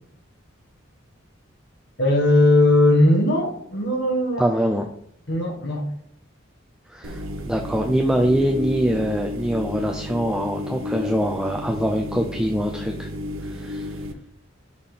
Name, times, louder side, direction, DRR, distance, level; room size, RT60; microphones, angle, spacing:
voice 1, 2.0-4.4 5.3-5.9, left 1 dB, 55° left, 1.4 m, -18 dB
voice 2, 4.4-4.9 6.9-13.1 13.4-14.0, equal, 5° right, 0.4 m, -24 dB
sound 1, 7.0-14.1, left 1 dB, 90° right, 0.8 m, -32 dB
5.6 x 4.3 x 5.0 m
head